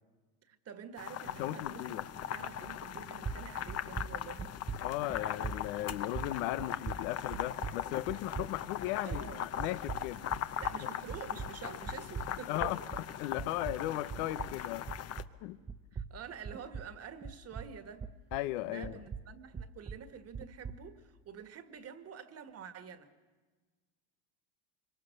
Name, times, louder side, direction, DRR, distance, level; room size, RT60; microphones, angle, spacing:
voice 1, 0.4-4.6 9.0-9.4 10.6-12.7 15.9-18.1 18.6-23.1, right 7 dB, 40° right, 1.8 m, -48 dB
sound 1, 1.0-15.2, left 10 dB, 40° left, 0.9 m, -40 dB
voice 2, 1.4-2.1 4.8-10.2 10.8-10.9 12.5-12.8 13.2-14.9 15.4-15.6 18.3-19.0, left 15 dB, 90° left, 1.1 m, -36 dB
sound 2, 2.7-3.0 3.2-10.9 11.1-15.4 15.7-18.5 18.8-20.9, right 5 dB, 15° right, 0.6 m, -42 dB
25.0 x 24.5 x 6.7 m
cardioid pair, 130°, 39 cm